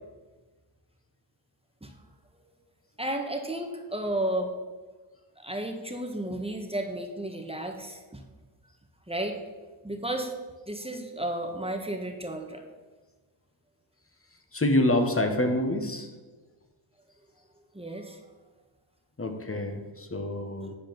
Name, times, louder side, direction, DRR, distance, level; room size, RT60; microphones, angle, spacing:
voice 1, 3.0-4.5 5.4-8.2 9.1-9.4 9.8-10.3 10.7-12.6 17.7-18.2, right 1 dB, 10° right, 3 dB, 1.4 m, -33 dB
voice 2, 14.5-16.1 19.2-20.8, left 1 dB, 25° left, 6 dB, 1.5 m, -26 dB
10.5 x 4.9 x 6.0 m, 1.3 s
cardioid pair, 50°, 49 cm